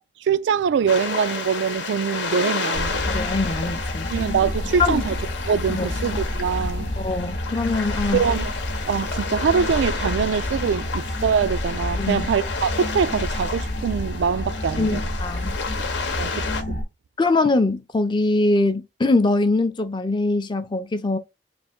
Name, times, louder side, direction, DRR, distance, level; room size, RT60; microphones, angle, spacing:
voice 1, 0.2-3.1 4.1-5.2 5.5-6.9 8.1-8.5 8.9-15.0 16.2-16.8, right 6 dB, 85° right, 0.3 m, -23 dB
sound 1, 0.9-16.6, left 4 dB, 85° left, 0.9 m, -31 dB
sound 2, 2.7-16.8, left 1 dB, 55° left, 0.7 m, -29 dB
voice 2, 3.1-4.1 4.8-5.0 5.7-5.9 7.0-8.2 12.0-12.3 14.8-15.6 17.2-21.2, left 2 dB, 25° left, 0.4 m, -22 dB
3.3 x 2.5 x 4.3 m
head